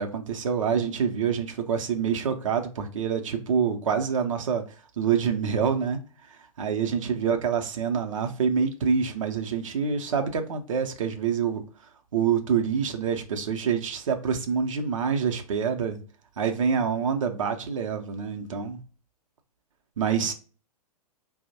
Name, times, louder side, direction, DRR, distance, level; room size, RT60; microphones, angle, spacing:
voice 1, 0.0-4.6 5.0-6.0 6.6-11.6 12.1-16.0 16.4-18.8 20.0-20.3, right 6 dB, 55° right, 0.6 m, -26 dB
4.3 x 2.0 x 2.7 m
figure-of-eight pair, 110°, 20 cm